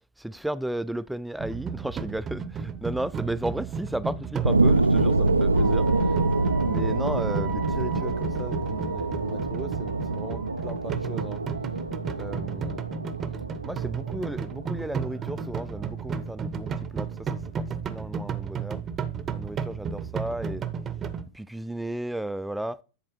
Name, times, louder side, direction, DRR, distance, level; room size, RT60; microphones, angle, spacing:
voice 1, 0.2-6.1 6.6-11.4 12.2-12.8 13.6-18.8 19.3-20.7 21.3-22.8, right 1 dB, 5° right, 0.3 m, -34 dB
sound 1, 1.4-21.2, right 6 dB, 25° right, 0.7 m, -33 dB
sound 2, 4.4-15.4 15.9-16.0, right 2 dB, 80° right, 0.3 m, -26 dB
9.8 x 4.2 x 4.2 m
figure-of-eight pair, 90°, 0 cm